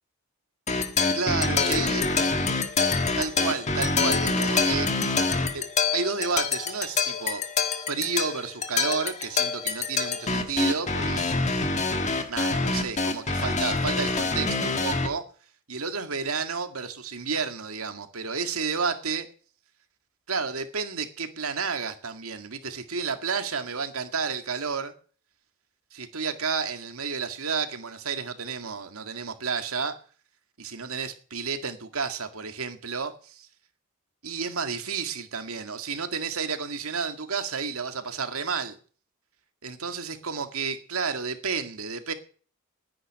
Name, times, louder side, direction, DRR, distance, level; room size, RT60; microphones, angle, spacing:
sound 1, 0.7-15.1, left 4 dB, 35° left, 1.5 m, -26 dB
voice 1, 1.1-2.0 3.2-4.9 5.5-5.6 5.9-7.4 7.9-11.5 12.3-15.2 15.7-19.3 20.3-24.9 25.9-30.0 30.6-33.5 34.2-38.8 39.6-42.1, right 5 dB, 85° right, 2.0 m, -31 dB
10.0 x 9.6 x 9.9 m
head